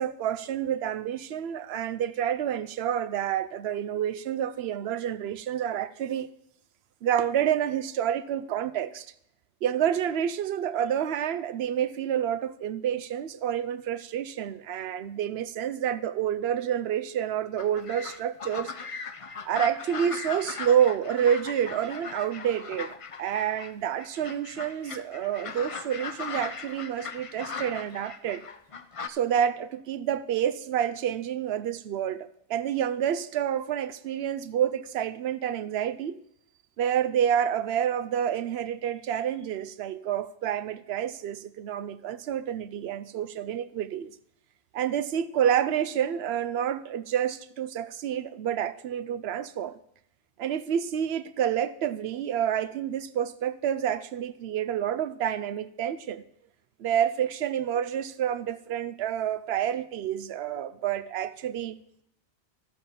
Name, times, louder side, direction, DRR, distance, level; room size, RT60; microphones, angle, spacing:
voice 1, 0.0-6.3 7.0-9.1 9.6-18.7 19.4-28.4 29.1-36.2 36.8-44.1 44.7-49.8 50.4-56.2 56.8-61.8, right 9 dB, 70° right, 0.8 m, -28 dB
sound 1, 17.6-23.7 24.0-29.1, left 5 dB, 40° left, 0.5 m, -39 dB
14.0 x 6.8 x 5.7 m
omnidirectional pair, 1.1 m